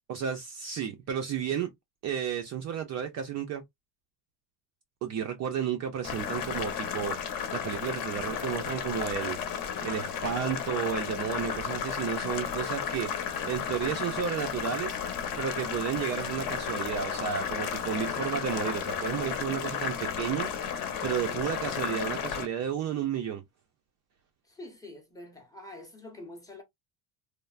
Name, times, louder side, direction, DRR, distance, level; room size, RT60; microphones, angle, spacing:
voice 1, 0.1-1.7 2.0-3.6 5.0-15.0 15.4-23.4, right 8 dB, 40° right, 0.4 m, -32 dB
Boiling, 6.0-22.4, left 7 dB, 50° left, 0.7 m, -33 dB
voice 2, 24.4-26.6, left 1 dB, 10° left, 0.6 m, -46 dB
3.2 x 2.0 x 2.3 m
cardioid pair, 160°, 44 cm